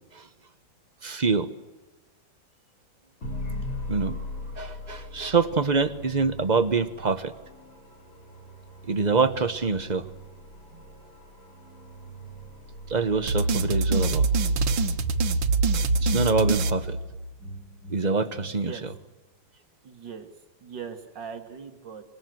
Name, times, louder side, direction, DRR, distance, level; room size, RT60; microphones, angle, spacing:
voice 1, 1.0-1.5 3.9-4.2 4.6-7.3 8.9-10.0 12.9-14.2 16.0-17.0 17.9-18.7, right 4 dB, 30° right, 11 dB, 0.9 m, -25 dB
sound 1, 3.2-15.4, left 1 dB, 80° left, 8.1 m, -40 dB
sound 2, 13.3-17.6, right 3 dB, 90° right, 2.0 m, -24 dB
sound 3, 15.4-16.0 16.3-19.1, right 1 dB, 55° left, 7.9 m, -47 dB
voice 2, 18.4-18.8 19.8-20.3 20.6-22.0, right 6 dB, 65° right, 6 dB, 2.3 m, -40 dB
26.0 x 20.5 x 7.8 m, 1.2 s
omnidirectional pair, 2.1 m